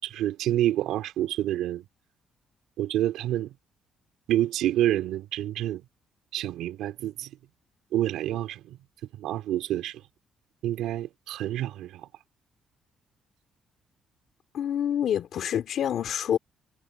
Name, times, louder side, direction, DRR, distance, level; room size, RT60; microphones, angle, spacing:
voice 1, 0.0-1.9 2.8-3.5 4.3-5.8 6.3-7.3 7.9-8.8 9.1-10.0 10.6-12.1, right 13 dB, 90° right, 3.6 m, -28 dB
voice 2, 14.5-16.4, left 9 dB, 70° left, 2.5 m, -27 dB
cardioid pair, 90°, 0 cm